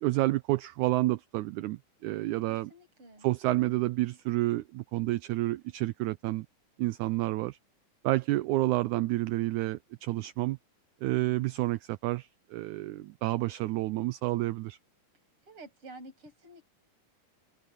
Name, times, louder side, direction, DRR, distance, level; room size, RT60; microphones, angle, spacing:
voice 1, 0.0-2.7 3.2-6.5 6.8-7.6 8.0-10.6 11.0-14.8, right 18 dB, 80° right, 1.8 m, -29 dB
voice 2, 2.5-3.3 15.5-16.6, right 2 dB, 40° right, 8.9 m, -50 dB
open air
omnidirectional pair, 3.8 m